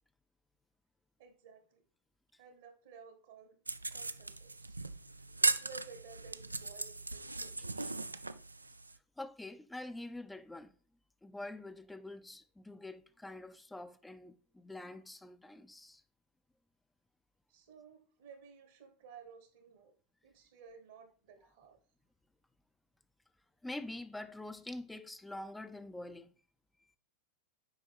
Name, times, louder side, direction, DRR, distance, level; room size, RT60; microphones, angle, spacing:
voice 1, 1.2-1.8 2.4-3.6 3.9-4.8 5.4-7.8 17.5-19.9 20.2-21.8, right 5 dB, 60° right, 1.3 m, -55 dB
sound 1, 3.7-9.0, right 3 dB, 80° right, 0.3 m, -37 dB
voice 2, 9.2-10.7 11.2-16.0 23.6-26.3, left 2 dB, 5° left, 0.5 m, -46 dB
8.0 x 5.2 x 3.4 m
figure-of-eight pair, 90°, 0 cm